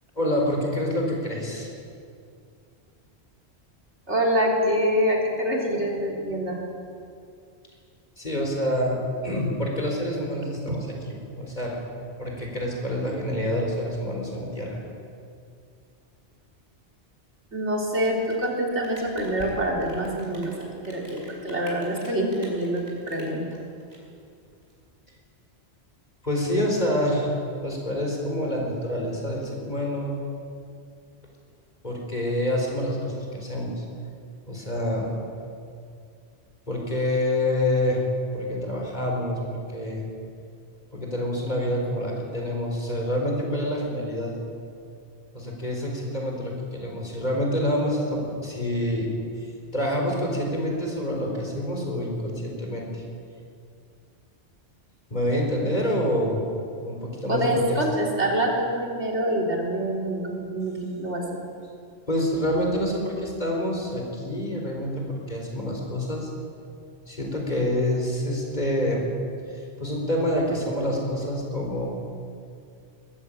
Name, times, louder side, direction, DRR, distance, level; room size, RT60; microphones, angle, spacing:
voice 1, 0.2-1.7 8.2-14.8 26.2-27.3 27.6-30.2 31.8-33.9 34.5-35.2 36.7-38.0 38.3-40.0 40.9-44.3 45.3-49.1 49.7-53.0 55.1-56.5 56.8-57.8 62.1-66.3 67.1-69.1 69.5-71.9, left 1 dB, 40° left, 0 dB, 4.5 m, -27 dB
voice 2, 4.1-6.6 17.5-23.4 57.3-61.2, right 1 dB, 90° right, 0 dB, 3.8 m, -26 dB
Rain, 17.9-24.7, right 1 dB, 65° right, 4.9 m, -46 dB
21.0 x 14.5 x 8.7 m, 2.4 s
omnidirectional pair, 1.1 m